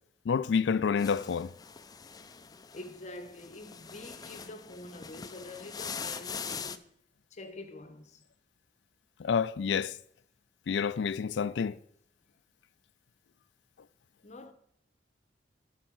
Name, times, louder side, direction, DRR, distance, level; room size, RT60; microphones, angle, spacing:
voice 1, 0.3-1.5 9.2-9.9 10.7-11.8, left 6 dB, 80° left, 0.4 m, -28 dB
sound 1, 1.0-6.8, left 6 dB, 20° left, 0.4 m, -42 dB
voice 2, 2.7-6.9 7.3-8.2 14.2-14.5, left 2 dB, 40° left, 0.9 m, -46 dB
11.5 x 4.6 x 6.2 m
head